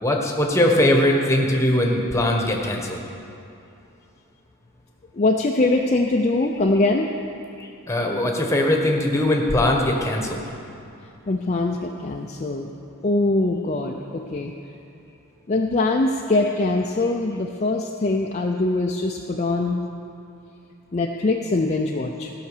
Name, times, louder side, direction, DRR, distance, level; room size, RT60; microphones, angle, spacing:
voice 1, 0.0-3.0 7.9-10.4, left 1 dB, 15° left, 1 dB, 1.1 m, -20 dB
voice 2, 5.1-7.1 11.3-12.7 13.0-14.5 15.5-19.8 20.9-22.3, left 2 dB, 30° left, 1 dB, 0.5 m, -22 dB
15.5 x 5.8 x 6.7 m, 2.7 s
head